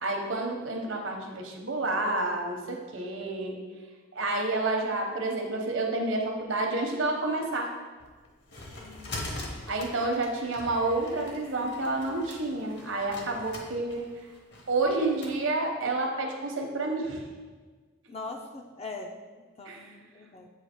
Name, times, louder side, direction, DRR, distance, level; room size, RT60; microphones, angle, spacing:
voice 1, 0.0-3.6 4.1-7.7 9.7-14.3 14.7-17.3 19.6-19.9, right 2 dB, 65° right, 1 dB, 0.9 m, -29 dB
sound 1, 8.0-15.4, left 2 dB, 55° left, 0.9 m, -43 dB
voice 2, 8.8-9.3 18.1-19.2 19.6-20.5, left 3 dB, 30° left, 3 dB, 0.3 m, -41 dB
8.0 x 2.8 x 4.4 m, 1.4 s
head